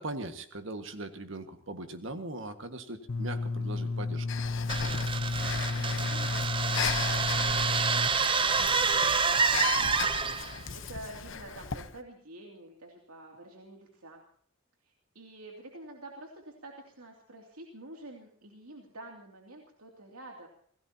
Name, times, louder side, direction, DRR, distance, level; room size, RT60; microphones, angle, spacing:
voice 1, 0.0-4.3, right 2 dB, 60° right, 8 dB, 1.8 m, -40 dB
sound 1, 3.1-8.1, left 3 dB, 80° left, 0.9 m, -32 dB
Breathing, 4.3-12.0, left 6 dB, 60° left, 1.0 m, -37 dB
sound 2, 4.7-10.6, right 5 dB, 25° right, 0.7 m, -28 dB
voice 2, 5.6-14.2 14.8-20.5, right 1 dB, 85° right, 1 dB, 2.7 m, -49 dB
28.0 x 18.0 x 2.9 m, 0.63 s
head